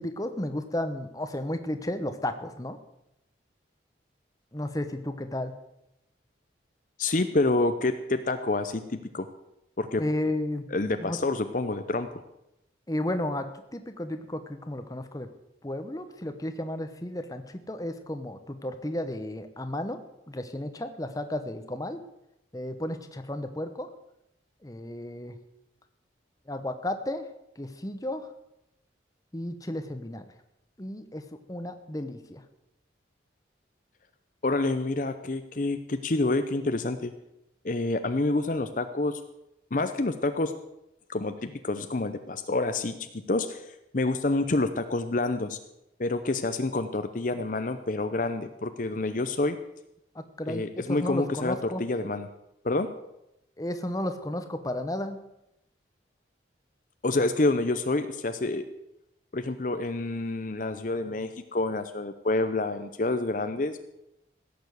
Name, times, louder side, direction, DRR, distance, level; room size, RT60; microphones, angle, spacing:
voice 1, 0.0-2.8 4.5-5.5 10.0-10.6 11.0-11.2 12.9-15.3 15.6-20.0 20.3-22.0 22.5-23.9 24.6-25.3 26.5-27.3 27.6-28.3 29.3-30.2 30.8-31.2 31.5-32.4 50.1-51.8 53.6-55.2, left 1 dB, 20° left, 8 dB, 0.9 m, -33 dB
voice 2, 7.0-9.3 9.8-10.0 10.7-12.1 34.4-37.1 37.6-39.2 39.7-40.5 41.1-43.7 43.9-45.6 46.0-49.6 50.5-52.3 52.6-52.9 57.0-58.6 59.3-63.8, left 2 dB, 45° left, 9 dB, 0.7 m, -28 dB
16.5 x 7.1 x 8.0 m, 0.86 s
head